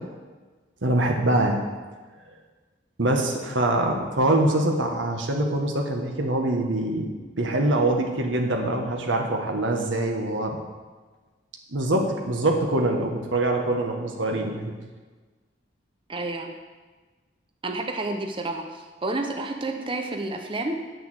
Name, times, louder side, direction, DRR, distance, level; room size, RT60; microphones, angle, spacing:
voice 1, 0.8-1.6 3.0-7.1 7.4-10.6 11.7-14.7, right 1 dB, 80° right, 2 dB, 1.3 m, -24 dB
voice 2, 16.1-16.5 17.6-20.8, right 2 dB, 25° right, 4 dB, 0.7 m, -30 dB
8.5 x 6.9 x 7.8 m, 1.3 s
head